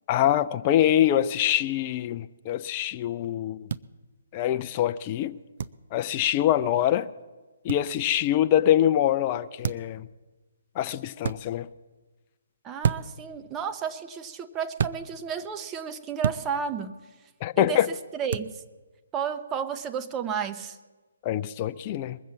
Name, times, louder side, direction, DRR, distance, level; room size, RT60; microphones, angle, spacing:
voice 1, 0.1-3.7 4.3-5.4 5.9-7.1 7.6-10.1 10.8-11.7 17.4-17.9 21.2-22.2, left 11 dB, 30° left, 0.5 m, -24 dB
sound 1, 3.7-3.8 5.6-5.8 7.7-7.8 9.6-9.9 11.2-11.4 12.8-13.2 14.8-15.0 16.2-16.4 18.3-18.5, right 7 dB, 55° right, 0.5 m, -28 dB
voice 2, 12.6-17.0 17.6-17.8 18.1-18.6 19.1-20.8, right 7 dB, 20° right, 0.8 m, -32 dB
21.5 x 7.4 x 7.1 m
figure-of-eight pair, 140°, 0 cm